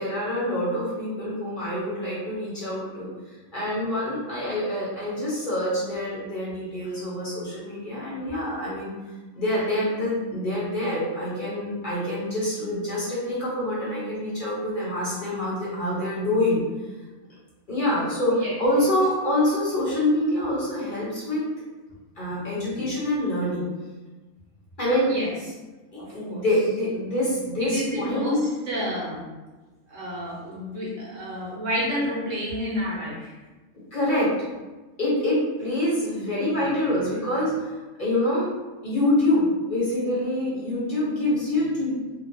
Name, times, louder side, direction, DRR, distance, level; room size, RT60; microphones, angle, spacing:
voice 1, 0.0-3.1 3.5-8.9 9.4-16.6 17.7-21.4 22.2-23.7 24.8-25.1 25.9-28.5 33.9-34.3 35.0-37.7 38.0-38.5 38.8-41.9, left 1 dB, 45° left, -8 dB, 0.9 m, -26 dB
voice 2, 25.9-26.4 27.6-28.4 28.7-29.2 29.9-33.3, equal, 70° right, -6 dB, 1.3 m, -30 dB
3.0 x 2.5 x 2.6 m, 1.2 s
omnidirectional pair, 1.4 m